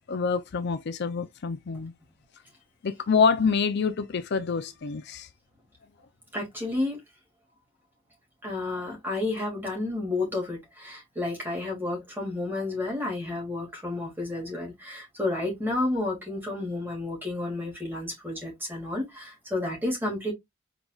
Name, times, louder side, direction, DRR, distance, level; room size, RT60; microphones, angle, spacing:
voice 1, 0.1-1.9 2.8-5.3, left 5 dB, 55° left, 0.5 m, -26 dB
voice 2, 6.3-7.0 8.4-20.3, left 2 dB, 10° right, 2.1 m, -31 dB
4.6 x 4.0 x 2.3 m
head